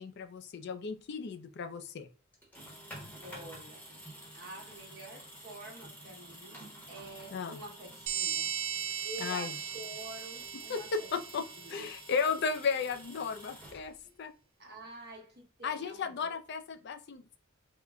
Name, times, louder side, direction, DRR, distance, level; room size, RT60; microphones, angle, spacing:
voice 1, 0.0-2.1 7.3-7.6 9.2-9.6 10.7-11.4 11.7-14.3 15.6-17.4, left 5 dB, 55° left, 0.4 m, -35 dB
sound 1, 2.3-14.2, equal, 10° left, 0.9 m, -50 dB
voice 2, 3.2-4.0 4.3-6.6 6.9-8.5 9.0-11.1 11.6-11.9 14.6-16.3, right 2 dB, 55° right, 1.0 m, -48 dB
sound 2, 8.1-12.3, right 8 dB, 85° right, 0.5 m, -38 dB
3.7 x 2.1 x 3.4 m
head